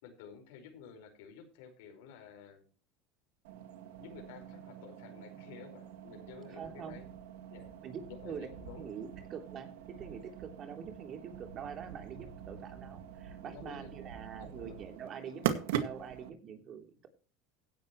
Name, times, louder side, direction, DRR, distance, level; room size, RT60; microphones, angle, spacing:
voice 1, 0.0-2.6 4.0-7.1 7.5-7.7 8.1-8.9 13.5-13.9 14.3-14.8, left 7 dB, 80° left, 5 dB, 4.9 m, -52 dB
sound 1, 3.4-16.3, right 10 dB, 85° right, 1.9 m, -42 dB
voice 2, 6.5-7.0 7.8-8.0 8.2-8.5 8.8-17.1, right 7 dB, 40° right, 5 dB, 3.2 m, -45 dB
16.5 x 10.5 x 3.1 m, 0.36 s
supercardioid pair, 115°, 0 cm